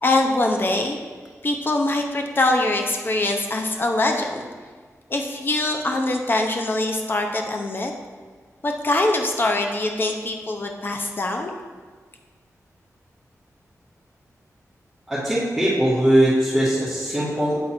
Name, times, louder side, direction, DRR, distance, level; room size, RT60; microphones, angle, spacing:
voice 1, 0.0-1.0 1.4-4.5 5.1-7.9 8.6-11.5, left 2 dB, 35° left, 3 dB, 0.7 m, -23 dB
voice 2, 15.1-17.6, right 1 dB, 5° right, -12 dB, 1.8 m, -20 dB
8.7 x 3.9 x 4.4 m, 1.5 s
wide cardioid pair, 95°, 6 cm